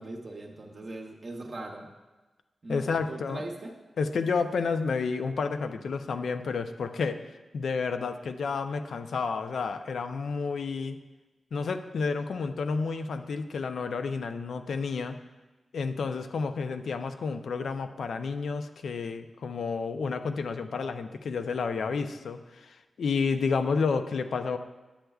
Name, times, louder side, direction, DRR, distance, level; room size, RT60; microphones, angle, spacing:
voice 1, 0.0-1.9 2.6-3.7, right 2 dB, 45° right, 0 dB, 0.7 m, -40 dB
voice 2, 2.7-3.4 4.0-11.0 11.5-15.2 15.7-24.6, left 4 dB, 80° left, 8 dB, 0.4 m, -30 dB
10.0 x 7.8 x 2.3 m, 1.2 s
wide cardioid pair, 125°, 0 cm